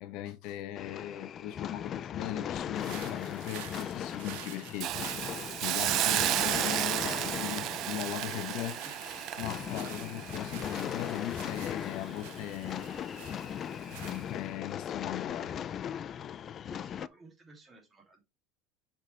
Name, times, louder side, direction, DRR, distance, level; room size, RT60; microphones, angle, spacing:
voice 1, 0.0-4.9 5.6-8.8 9.4-12.9 13.9-15.6, left 12 dB, 65° left, 0.9 m, -39 dB
sound 1, 0.7-17.1, left 9 dB, 35° left, 0.3 m, -38 dB
sound 2, 2.7-14.7, right 11 dB, 80° right, 1.5 m, -48 dB
Hiss, 4.8-11.8 12.2-12.4, right 15 dB, 50° right, 0.3 m, -33 dB
voice 2, 16.6-18.2, right 3 dB, 20° right, 2.7 m, -54 dB
6.1 x 5.7 x 3.3 m
cardioid pair, 140°, 0 cm